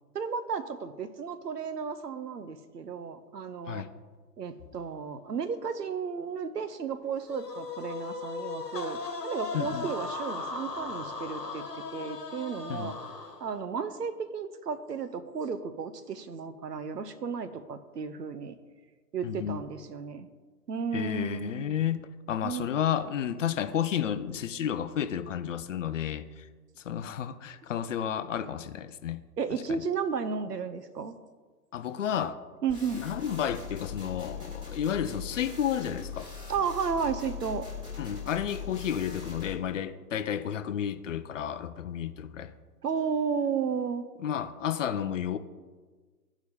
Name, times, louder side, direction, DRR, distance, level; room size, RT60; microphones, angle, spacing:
voice 1, 0.1-3.8 4.4-12.9 13.4-18.6 19.1-20.3 20.7-21.8 22.4-22.7 29.4-31.1 32.6-33.0 36.5-37.7 42.8-44.0, right 6 dB, 80° right, 0.7 m, -33 dB
sound 1, 7.3-13.6, left 4 dB, 80° left, 1.4 m, -37 dB
voice 2, 9.5-9.9 12.7-12.9 19.2-19.6 20.9-22.0 22.3-26.5 26.8-29.2 29.5-29.6 31.7-32.4 32.9-36.3 38.0-42.5 44.2-45.4, left 9 dB, 55° left, 0.5 m, -31 dB
sound 2, 32.7-39.5, left 6 dB, 10° right, 1.5 m, -40 dB
14.0 x 5.0 x 2.8 m
figure-of-eight pair, 115°, 48 cm